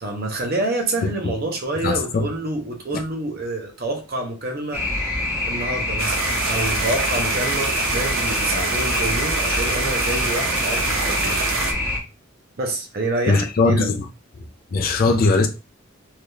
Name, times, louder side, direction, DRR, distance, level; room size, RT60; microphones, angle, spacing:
voice 1, 0.0-4.8 5.5-11.4 12.6-14.0, right 2 dB, 50° right, 0.8 m, -27 dB
voice 2, 1.8-2.3 2.9-3.0 13.3-14.1 14.7-15.5, left 3 dB, 45° left, 0.4 m, -19 dB
sound 1, 4.7-12.0, left 2 dB, 10° right, 0.9 m, -25 dB
sound 2, 6.0-11.7, right 5 dB, 80° right, 0.6 m, -26 dB
3.4 x 2.7 x 2.3 m
head